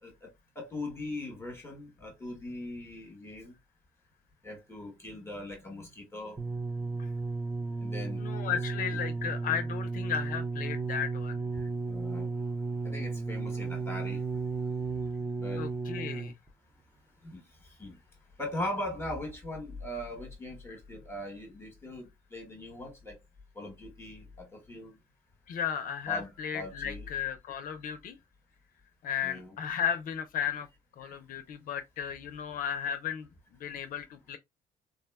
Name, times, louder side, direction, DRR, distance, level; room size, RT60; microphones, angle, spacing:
voice 1, 0.0-3.6 4.4-6.4 7.8-8.3 11.6-12.3 12.8-14.6 15.4-15.6 17.2-18.0 18.4-23.2 23.5-25.0 26.1-27.1 29.2-29.5 31.0-31.1, left 1 dB, 15° left, 1.1 m, -40 dB
sound 1, 6.4-16.5 17.3-17.4, right 4 dB, 15° right, 0.4 m, -34 dB
voice 2, 8.2-11.4 15.6-16.3 25.5-28.2 29.0-30.7 31.0-33.3 33.6-34.4, left 8 dB, 55° left, 0.4 m, -34 dB
3.6 x 2.1 x 2.2 m
cardioid pair, 110°, 17 cm